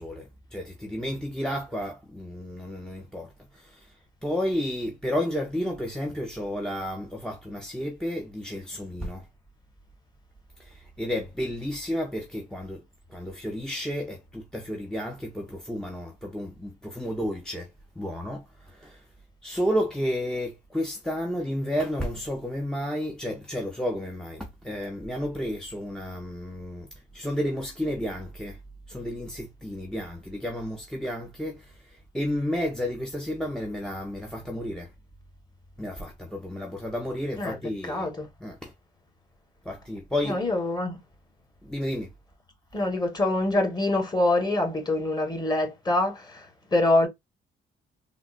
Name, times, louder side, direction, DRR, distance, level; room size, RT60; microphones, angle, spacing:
voice 1, 0.0-3.9 4.2-9.3 10.6-17.7 18.0-19.0 19.4-26.9 27.1-28.6 28.9-34.9 35.8-38.1 38.4-38.7 39.6-40.4 41.6-42.1, equal, 5° left, 0.6 m, -32 dB
voice 2, 37.9-38.3 40.2-41.0 42.7-47.1, left 2 dB, 20° left, 1.3 m, -25 dB
3.6 x 2.1 x 2.5 m
cardioid pair, 90°, 20 cm